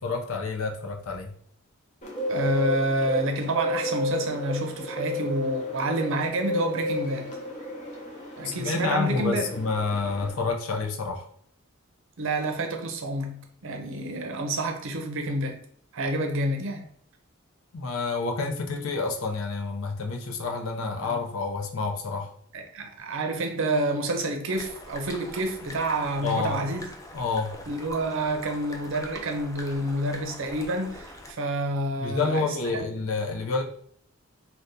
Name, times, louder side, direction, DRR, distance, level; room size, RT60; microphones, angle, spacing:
voice 1, 0.0-1.3 8.4-11.3 17.7-22.3 26.2-26.7 27.1-27.6 32.0-33.6, left 4 dB, 75° left, 0.5 m, -29 dB
Bird, 2.0-10.3, left 1 dB, 35° left, 0.8 m, -32 dB
voice 2, 2.3-7.3 8.4-9.5 12.2-15.6 15.9-16.8 21.0-21.2 22.5-26.9 27.7-32.8, right 1 dB, 65° right, 0.6 m, -28 dB
sound 1, 24.5-31.3, left 1 dB, 15° left, 0.4 m, -43 dB
2.7 x 2.3 x 3.6 m
head